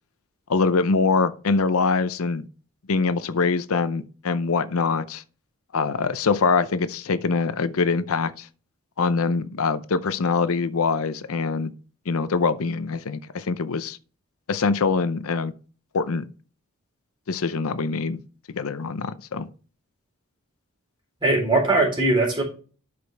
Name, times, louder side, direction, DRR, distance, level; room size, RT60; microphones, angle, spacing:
voice 1, 0.5-2.4 2.9-5.2 5.7-8.5 9.0-11.7 12.1-14.0 14.5-15.5 15.9-16.2 17.3-18.2 18.5-19.5, left 4 dB, 80° left, 0.6 m, -24 dB
voice 2, 21.2-22.4, right 2 dB, 20° right, 3.7 m, -20 dB
12.0 x 5.2 x 3.4 m
head